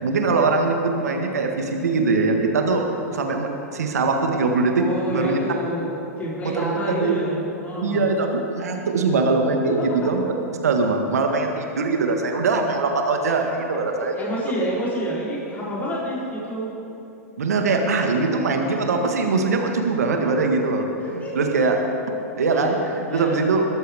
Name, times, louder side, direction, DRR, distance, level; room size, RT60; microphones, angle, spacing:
voice 1, 0.0-2.8 3.1-5.4 6.4-7.2 7.8-10.2 10.6-14.1 17.4-20.8 21.1-21.8 22.4-23.7, right 3 dB, 75° right, 3 dB, 1.6 m, -22 dB
voice 2, 4.8-8.1 9.6-10.1 13.7-16.7 21.0-21.7 22.5-22.8 23.1-23.4, equal, 20° left, -7 dB, 3.7 m, -28 dB
21.0 x 13.5 x 3.6 m, 2.9 s
figure-of-eight pair, 100°, 9 cm